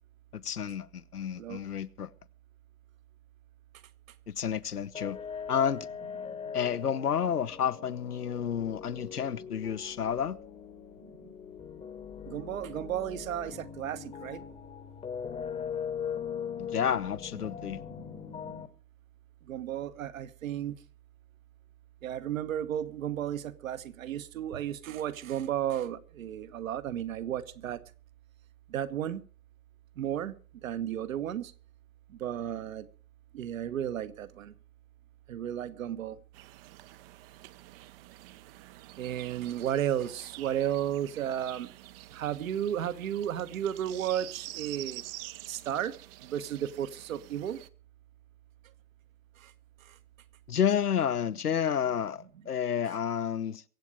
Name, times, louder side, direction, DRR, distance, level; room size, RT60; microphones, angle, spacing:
voice 1, 0.3-2.1 4.3-5.2 5.5-5.9 6.5-10.4 16.6-17.8 50.5-53.6, left 8 dB, 80° left, 0.9 m, -30 dB
sound 1, 4.9-18.7, left 7 dB, 15° left, 1.1 m, -40 dB
voice 2, 12.2-14.4 17.5-18.7 19.5-20.8 22.0-27.8 28.7-29.2 30.0-30.3 30.6-31.5 32.1-32.9 33.3-34.5 35.3-36.2 39.0-41.7 42.1-45.0 45.5-45.9 46.2-47.6 49.4-49.5 49.8-50.0, right 10 dB, 60° right, 1.3 m, -34 dB
sound 2, 36.3-47.7, right 16 dB, 40° right, 0.8 m, -47 dB
23.0 x 8.4 x 5.0 m
figure-of-eight pair, 95°, 45 cm